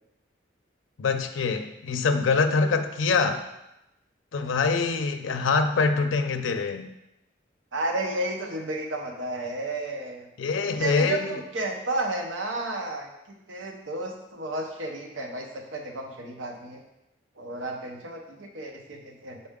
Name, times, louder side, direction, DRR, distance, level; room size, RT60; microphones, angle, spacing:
voice 1, 1.0-3.5 4.3-6.9 10.4-11.4, left 4 dB, 90° left, 7 dB, 0.5 m, -24 dB
voice 2, 7.7-10.3 10.7-13.1 13.5-16.8 17.4-19.5, right 2 dB, 85° right, 2 dB, 0.9 m, -32 dB
6.5 x 4.2 x 3.6 m, 0.90 s
head